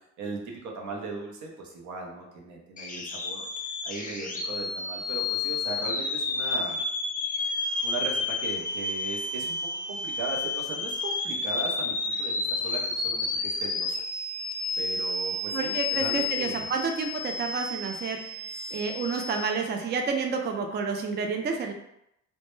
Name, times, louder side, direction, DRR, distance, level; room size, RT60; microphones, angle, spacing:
voice 1, 0.2-3.5 3.8-6.8 7.8-13.3 13.6-14.0 14.8-16.7 18.5-18.8, right 3 dB, 70° right, 0 dB, 0.7 m, -38 dB
sound 1, 2.8-19.5, left 3 dB, 30° left, 0.4 m, -31 dB
voice 2, 15.5-18.5 18.7-21.7, right 5 dB, 35° right, 3 dB, 0.4 m, -30 dB
2.1 x 2.0 x 3.0 m, 0.78 s
cardioid pair, 90°, 30 cm